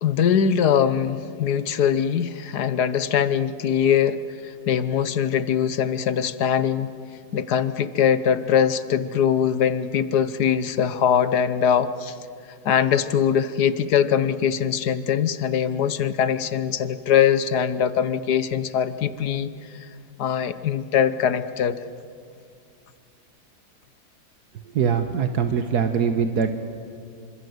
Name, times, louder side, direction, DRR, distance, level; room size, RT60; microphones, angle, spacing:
voice 1, 0.0-6.9 7.3-12.2 12.6-19.5 20.2-21.8, left 8 dB, 80° left, 13 dB, 1.6 m, -22 dB
voice 2, 24.7-26.6, right 6 dB, 75° right, 7 dB, 1.6 m, -22 dB
26.5 x 26.0 x 8.0 m, 2.3 s
omnidirectional pair, 1.7 m